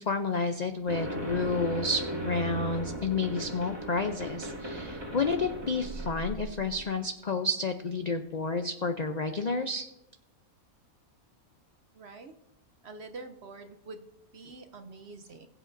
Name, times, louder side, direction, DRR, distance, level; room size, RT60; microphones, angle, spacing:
voice 1, 0.0-9.8, left 3 dB, 75° left, 7 dB, 0.4 m, -30 dB
sound 1, 0.9-6.9, right 1 dB, 15° right, 1.9 m, -37 dB
voice 2, 11.9-12.3 12.8-14.1 14.3-15.5, right 3 dB, 55° right, 7 dB, 0.8 m, -45 dB
20.5 x 8.0 x 2.6 m, 0.87 s
omnidirectional pair, 1.5 m